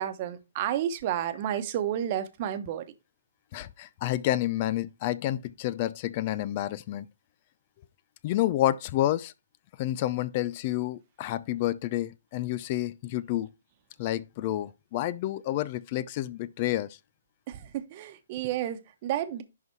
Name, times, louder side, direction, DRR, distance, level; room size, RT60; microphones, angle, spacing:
voice 1, 0.0-2.8 17.5-19.4, right 11 dB, 35° right, 1.1 m, -31 dB
voice 2, 3.5-7.1 8.2-9.3 9.8-13.5 14.0-17.0, left 14 dB, 35° left, 0.5 m, -29 dB
11.0 x 4.1 x 4.6 m
hypercardioid pair, 150°, 0 cm